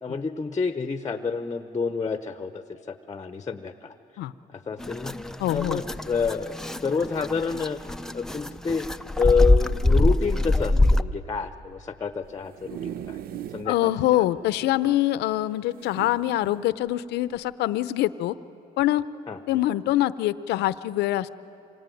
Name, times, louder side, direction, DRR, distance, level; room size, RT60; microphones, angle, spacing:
voice 1, 0.0-3.9 4.5-5.1 5.5-7.8 8.1-8.9 9.2-13.2 13.5-14.3 14.8-15.0 19.3-19.4, left 5 dB, 20° left, 10 dB, 0.9 m, -29 dB
sound 1, 4.8-11.0, left 2 dB, 5° left, 0.6 m, -23 dB
voice 2, 5.4-5.8 13.7-18.3 18.8-19.0 19.5-21.3, left 14 dB, 80° left, 15 dB, 0.7 m, -24 dB
sound 2, 12.2-13.8 14.2-14.3 14.5-14.6 15.7-16.7 17.3-17.5, right 10 dB, 60° right, 0.6 m, -38 dB
26.0 x 23.5 x 9.2 m, 3.0 s
cardioid pair, 110°, 17 cm